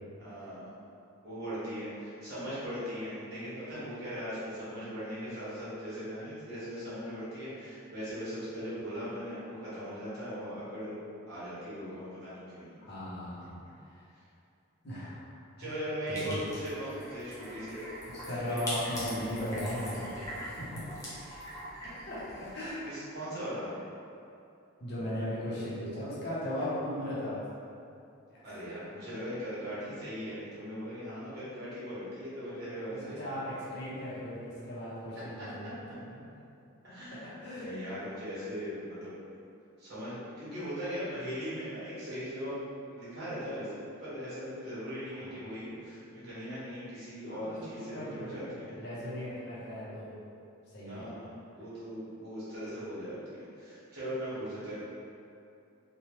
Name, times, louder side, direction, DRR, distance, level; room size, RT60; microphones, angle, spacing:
voice 1, 0.2-0.7 1.2-10.9 11.3-12.8 15.6-17.8 18.4-18.6 22.8-23.7 28.4-33.4 35.4-35.5 36.8-37.2 37.5-39.1 39.8-42.6 42.9-48.7 50.9-54.7, equal, 45° right, -12 dB, 1.2 m, -39 dB
voice 2, 12.8-13.4 13.8-13.9 14.8-15.2 15.6-15.7 16.1-16.4 18.1-20.3 20.6-20.8 22.1-22.2 22.5-22.9 24.8-27.4 28.3-28.4 32.8-35.8 36.2-36.3 37.4-37.7 45.1-45.3 47.3-50.1 50.7-51.2, left 1 dB, 50° left, -9 dB, 0.8 m, -37 dB
sound 1, 16.1-22.7, equal, 15° left, 0.5 m, -42 dB
3.1 x 2.3 x 2.9 m, 2.6 s
head